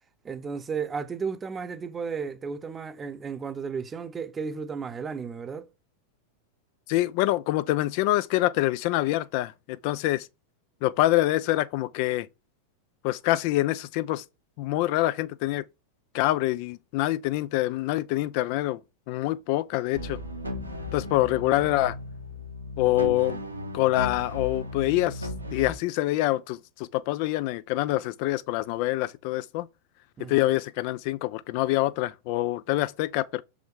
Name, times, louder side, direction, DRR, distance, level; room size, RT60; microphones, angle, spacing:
voice 1, 0.2-5.7 30.2-30.5, right 5 dB, 20° right, 0.7 m, -34 dB
voice 2, 6.9-10.3 10.8-12.3 13.0-14.2 14.6-15.6 16.1-18.8 19.1-20.2 20.9-22.0 22.8-23.4 23.7-29.7 30.2-33.4, left 16 dB, 45° left, 0.3 m, -26 dB
sound 1, 19.9-25.8, left 1 dB, 85° right, 1.5 m, -36 dB
6.0 x 4.9 x 3.4 m
figure-of-eight pair, 90°, 0 cm